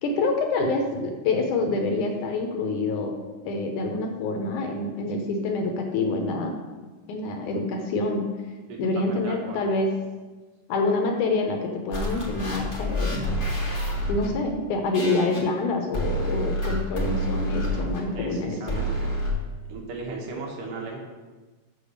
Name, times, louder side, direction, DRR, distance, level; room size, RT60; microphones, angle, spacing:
voice 1, 0.0-3.2 3.4-6.6 7.1-8.3 8.8-9.9 10.7-13.3 14.1-18.8, left 3 dB, 70° left, 3 dB, 2.3 m, -26 dB
voice 2, 8.7-9.7 18.2-19.1 19.7-21.0, right 3 dB, 70° right, -1 dB, 3.1 m, -36 dB
sound 1, 11.9-14.3 14.9-15.4 15.9-18.0 18.7-19.3, equal, 30° left, 0.9 m, -28 dB
6.9 x 6.9 x 6.5 m, 1.3 s
omnidirectional pair, 3.9 m